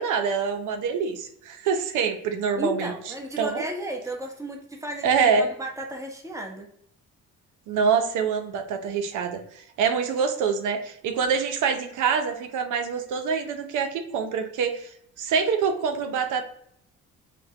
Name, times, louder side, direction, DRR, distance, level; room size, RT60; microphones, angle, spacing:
voice 1, 0.0-2.9 3.4-3.6 5.0-5.5 7.7-14.9 15.2-16.4, right 6 dB, 85° right, 6 dB, 0.6 m, -25 dB
voice 2, 2.5-6.7, right 1 dB, 10° right, 2 dB, 0.9 m, -33 dB
5.2 x 2.2 x 2.8 m, 0.70 s
cardioid pair, 90°, 30 cm